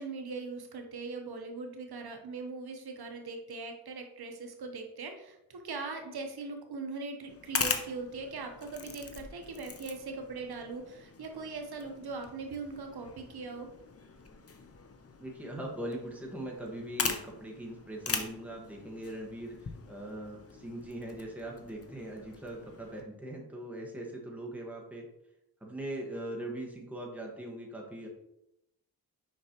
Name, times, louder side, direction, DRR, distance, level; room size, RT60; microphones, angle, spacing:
voice 1, 0.0-13.7, right 3 dB, 75° right, 4 dB, 0.9 m, -40 dB
sound 1, 7.3-23.0, left 5 dB, 40° left, 0.7 m, -41 dB
voice 2, 15.2-19.5 19.9-25.0 25.6-28.1, right 1 dB, 5° right, -2 dB, 1.4 m, -41 dB
6.4 x 5.3 x 2.9 m, 0.85 s
wide cardioid pair, 90°, 38 cm